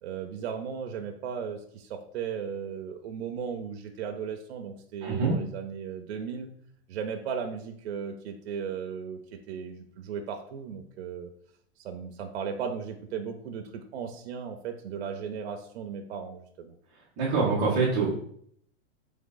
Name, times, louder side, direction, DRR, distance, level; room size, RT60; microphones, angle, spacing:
voice 1, 0.0-6.5 6.9-9.2 9.5-11.3 11.8-16.7, right 7 dB, 70° right, 4 dB, 0.6 m, -36 dB
voice 2, 5.0-5.4 17.2-18.1, right 4 dB, 15° right, -7 dB, 0.4 m, -25 dB
3.6 x 3.3 x 3.8 m, 0.64 s
supercardioid pair, 170°, 34 cm